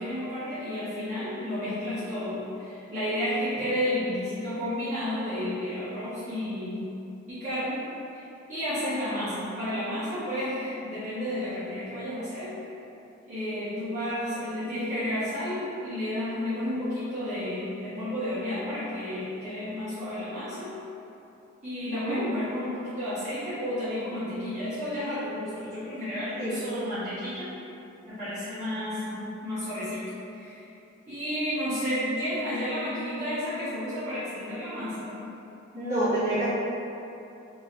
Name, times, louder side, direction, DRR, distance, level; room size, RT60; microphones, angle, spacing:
voice 1, 0.0-6.9 7.3-7.8 8.1-8.2 8.5-12.6 13.3-20.8 21.6-27.5 28.0-30.0 30.3-30.6 31.1-35.2, left 1 dB, 35° right, -16 dB, 1.1 m, -31 dB
voice 2, 21.9-22.2 26.4-26.6 35.7-36.5, right 1 dB, 15° right, -16 dB, 1.4 m, -27 dB
3.4 x 2.8 x 3.3 m, 2.8 s
head